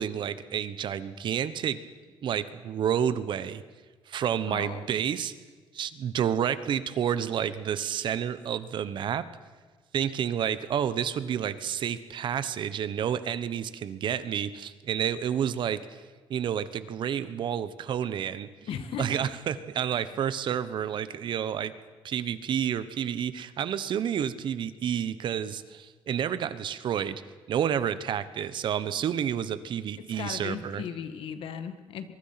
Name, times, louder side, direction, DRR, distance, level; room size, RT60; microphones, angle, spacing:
voice 1, 0.0-1.8 2.2-3.6 4.1-5.3 5.7-9.3 9.9-16.0 16.3-18.5 19.0-21.7 22.0-27.2 27.5-30.8, right 9 dB, 55° right, 14 dB, 1.2 m, -30 dB
voice 2, 4.5-4.8 18.7-19.6 30.2-32.1, left 7 dB, 70° left, 10 dB, 2.0 m, -37 dB
24.0 x 23.0 x 5.9 m, 1.4 s
cardioid pair, 160°, 10 cm